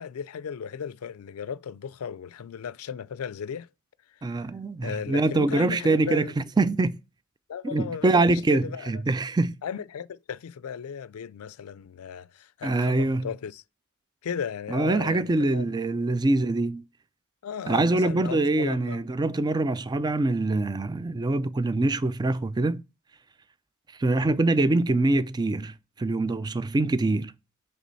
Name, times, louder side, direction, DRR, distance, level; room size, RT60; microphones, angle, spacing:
voice 1, 0.0-3.7 4.3-4.5 4.8-6.3 7.5-8.9 9.6-13.6 14.2-15.7 16.1-16.2 17.4-19.1 24.2-24.3, left 7 dB, 80° left, 0.4 m, -36 dB
voice 2, 4.2-7.0 7.6-9.5 12.6-13.3 14.7-16.8 17.7-22.8 24.0-27.3, right 2 dB, 20° right, 0.3 m, -24 dB
8.4 x 3.3 x 4.0 m
head